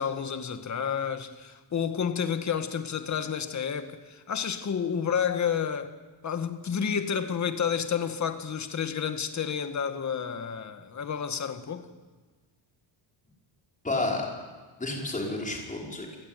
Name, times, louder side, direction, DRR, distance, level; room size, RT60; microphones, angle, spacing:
voice 1, 0.0-5.9 6.2-11.9, left 7 dB, 35° left, 1.7 m, -30 dB
voice 2, 13.8-14.3 14.8-16.2, left 2 dB, 15° left, 5.4 m, -30 dB
29.5 x 20.5 x 9.2 m
wide cardioid pair, 170°, 47 cm